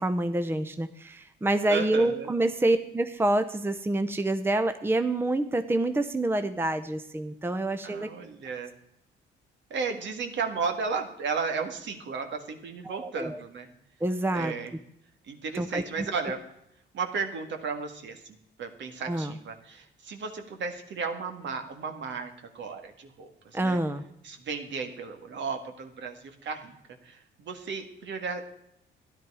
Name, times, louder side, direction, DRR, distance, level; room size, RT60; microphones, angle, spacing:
voice 1, 0.0-8.1 12.8-13.4 14.0-14.5 15.6-15.8 19.1-19.3 23.5-24.0, right 1 dB, 10° right, 9 dB, 0.8 m, -27 dB
voice 2, 1.7-2.3 7.8-8.7 9.7-13.7 14.3-14.7 15.2-16.4 16.9-23.8 24.2-28.4, right 5 dB, 65° right, 5 dB, 1.9 m, -34 dB
13.0 x 11.0 x 4.9 m, 0.77 s
cardioid pair, 90°, 20 cm